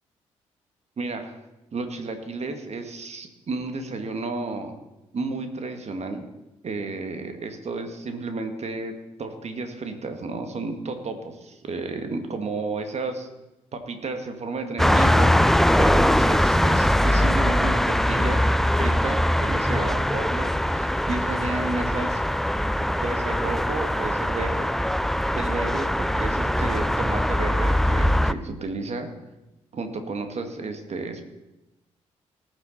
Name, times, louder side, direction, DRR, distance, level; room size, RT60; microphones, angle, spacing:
voice 1, 1.0-1.4 1.7-4.7 5.1-6.3 6.6-13.3 13.7-15.3 15.8-18.4 18.8-22.2 23.0-24.7 25.3-29.1 29.7-31.3, right 3 dB, 45° right, 7 dB, 2.0 m, -32 dB
sound 1, 14.8-28.3, equal, ahead, 0.5 m, -22 dB
19.0 x 7.1 x 4.2 m, 0.96 s
hypercardioid pair, 40°, 15 cm